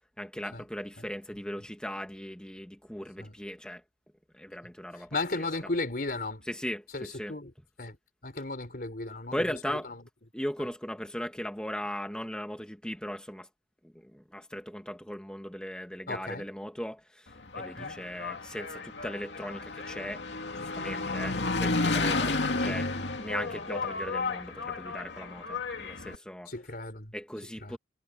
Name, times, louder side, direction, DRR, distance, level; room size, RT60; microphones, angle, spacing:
voice 1, 0.2-3.8 4.3-5.5 6.5-7.3 9.3-9.9 10.3-13.5 13.8-20.2 20.5-26.5 27.1-27.8, equal, 5° left, 1.3 m, -38 dB
voice 2, 5.1-6.5 6.9-7.5 7.8-8.0 8.2-9.4 9.7-10.0 16.1-16.5 17.8-18.0 21.2-21.5 26.5-27.1 27.6-27.8, left 2 dB, 55° left, 3.7 m, -35 dB
Engine, 17.3-26.2, left 3 dB, 85° left, 2.3 m, -32 dB
head